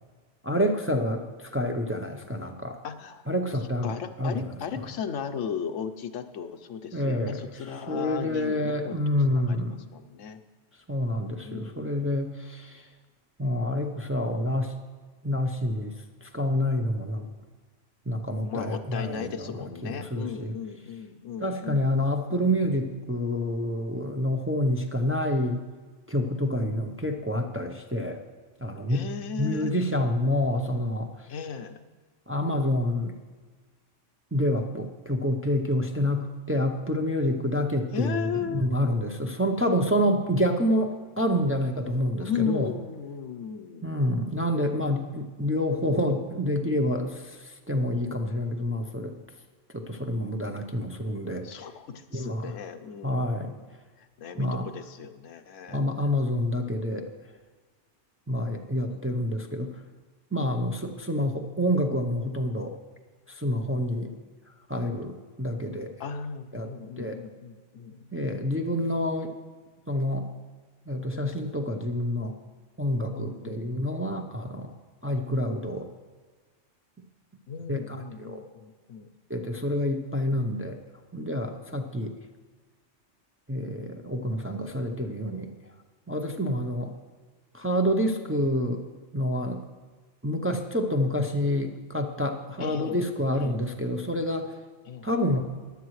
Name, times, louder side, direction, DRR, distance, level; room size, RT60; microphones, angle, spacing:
voice 1, 0.4-2.8 3.3-4.4 6.9-7.5 7.9-9.8 10.9-12.8 13.4-14.7 15.2-15.9 16.2-17.3 18.1-20.5 21.4-25.6 26.1-28.2 28.6-29.1 29.4-31.1 32.3-33.2 34.3-42.7 43.8-49.1 49.7-51.5 52.1-52.5 53.0-53.6 54.4-54.7 55.7-57.1 58.3-59.7 60.3-62.7 63.3-64.1 64.7-65.9 66.5-66.7 67.0-67.2 68.1-69.3 69.9-70.3 70.9-72.3 72.8-74.7 75.0-75.9 77.7-78.4 79.3-80.8 81.1-82.2 83.5-85.5 86.1-86.9 87.5-88.8 89.1-89.6 90.2-94.5 95.0-95.5, left 1 dB, 15° right, 3 dB, 0.5 m, -28 dB
voice 2, 2.8-3.2 3.8-9.0 9.2-10.4 11.4-12.1 18.4-22.0 28.9-29.8 31.3-31.8 37.9-38.7 42.2-43.9 51.4-53.6 54.0-55.8 58.9-59.4 66.0-68.1 73.2-73.8 77.5-79.1 92.6-93.1 93.3-93.6 94.9-95.1, left 7 dB, 90° left, 8 dB, 1.1 m, -36 dB
15.5 x 11.0 x 3.2 m, 1.4 s
omnidirectional pair, 1.3 m